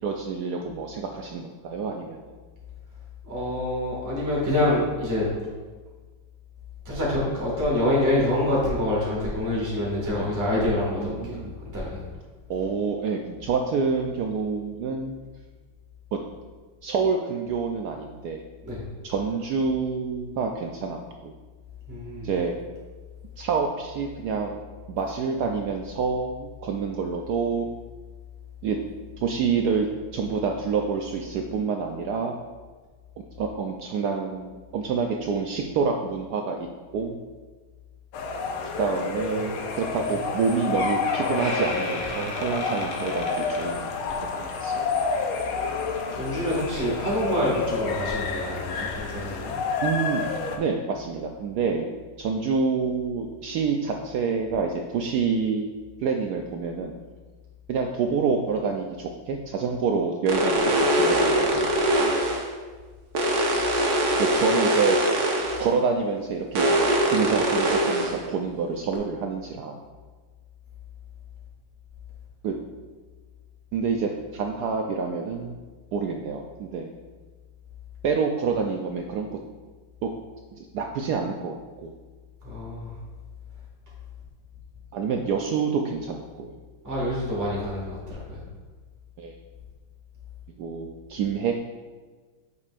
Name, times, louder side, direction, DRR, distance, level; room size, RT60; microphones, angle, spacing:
voice 1, 0.0-2.2 10.2-10.4 11.0-11.5 12.5-15.2 16.1-16.2 16.8-18.4 19.0-21.3 22.2-22.6 23.4-24.6 24.9-27.7 28.6-28.8 29.2-29.9 30.1-32.3 33.2-36.7 36.9-37.2 38.8-43.9 44.1-44.9 49.8-50.3 50.6-55.7 56.0-57.0 57.7-61.7 64.2-65.0 65.6-66.7 67.0-69.8 72.4-72.5 73.7-75.5 75.9-76.9 78.0-79.4 80.0-80.1 80.5-81.9 84.9-86.5 89.2-89.3 90.6-91.6, right 5 dB, 80° right, 2 dB, 0.9 m, -27 dB
voice 2, 3.2-5.3 6.8-11.4 11.7-12.0 18.6-18.8 21.9-22.3 46.1-49.5 82.4-82.9 86.8-88.4, left 1 dB, 10° right, -6 dB, 1.7 m, -26 dB
sound 1, 38.1-50.6, left 4 dB, 85° left, 1.6 m, -29 dB
Door, 40.3-40.4 40.8-44.3 44.6-44.9 45.6-45.7, left 2 dB, 50° left, 1.2 m, -35 dB
sound 2, 60.3-62.5 63.1-65.7 66.5-68.2 68.9-69.0, right 1 dB, 55° right, 1.4 m, -22 dB
8.5 x 6.4 x 2.5 m, 1.4 s
omnidirectional pair, 2.2 m